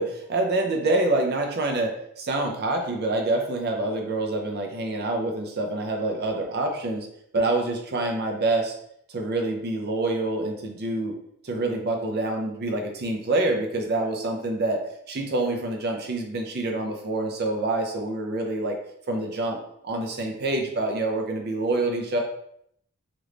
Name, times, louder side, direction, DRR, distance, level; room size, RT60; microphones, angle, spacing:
voice 1, 0.0-7.1 7.3-8.7 9.1-11.2 11.4-14.8 15.1-18.7 19.1-19.6 19.8-22.2, right 2 dB, 45° right, 2 dB, 0.6 m, -26 dB
3.0 x 2.5 x 3.3 m, 0.71 s
head